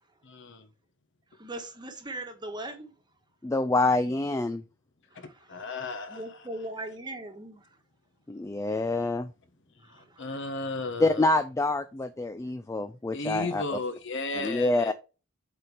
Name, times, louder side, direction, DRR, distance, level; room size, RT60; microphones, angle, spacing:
voice 1, 0.2-0.7 3.7-3.9 5.2-6.5 9.9-11.3 13.1-14.9, left 2 dB, 60° left, 1.2 m, -35 dB
voice 2, 1.3-2.9 5.1-5.6 6.1-7.7 9.8-10.3, right 1 dB, 20° right, 1.3 m, -40 dB
voice 3, 3.4-4.6 8.3-9.3 11.0-13.6 14.4-14.9, left 2 dB, 15° left, 0.3 m, -26 dB
7.6 x 4.2 x 3.2 m
head